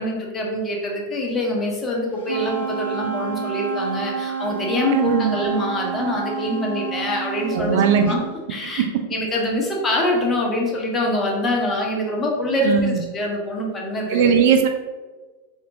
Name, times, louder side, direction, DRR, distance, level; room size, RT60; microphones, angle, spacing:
voice 1, 0.0-7.8 8.1-8.2 8.5-14.3, left 1 dB, 20° left, -1 dB, 0.8 m, -24 dB
Wind instrument woodwind instrument, 2.2-8.3, right 7 dB, 80° right, 0.7 m, -29 dB
voice 2, 4.9-5.4 7.5-8.1 8.6-8.9 12.6-13.0 14.1-14.7, right 7 dB, 50° right, 5 dB, 0.3 m, -19 dB
4.2 x 2.9 x 2.6 m, 1.3 s
figure-of-eight pair, 90°, 0 cm